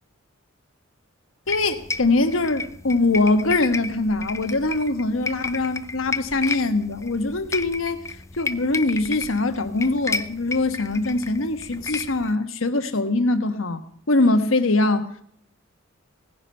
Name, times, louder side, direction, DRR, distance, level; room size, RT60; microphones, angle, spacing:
voice 1, 1.5-8.0 8.4-15.1, left 2 dB, 80° left, 1.3 m, -22 dB
sound 1, 1.5-12.3, left 4 dB, 15° left, 0.4 m, -33 dB
17.5 x 9.9 x 5.5 m
head